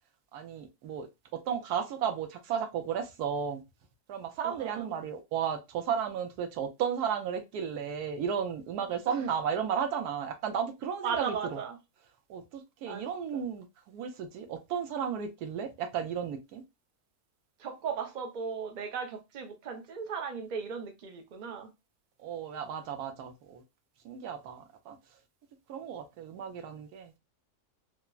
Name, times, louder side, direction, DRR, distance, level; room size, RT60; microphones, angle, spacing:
voice 1, 0.3-3.6 4.1-11.6 12.3-16.6 22.2-23.6 24.0-25.0 25.7-27.2, right 7 dB, 90° right, 1.2 m, -34 dB
voice 2, 4.4-4.9 9.1-9.2 11.0-11.8 12.9-13.0 13.3-13.4 17.6-21.7, right 6 dB, 55° right, 0.5 m, -37 dB
3.4 x 2.0 x 2.3 m
omnidirectional pair, 1.6 m